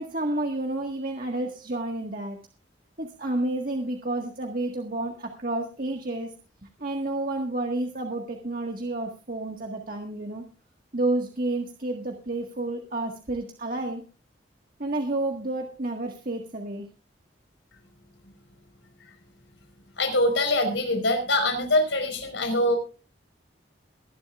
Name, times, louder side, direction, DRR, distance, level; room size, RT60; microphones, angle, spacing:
voice 1, 0.0-2.4 3.0-6.3 6.8-10.4 10.9-14.0 14.8-16.9, right 2 dB, 50° right, 2 dB, 1.6 m, -30 dB
voice 2, 20.0-22.8, left 1 dB, 85° left, 6 dB, 4.6 m, -23 dB
23.0 x 11.0 x 2.4 m, 0.33 s
head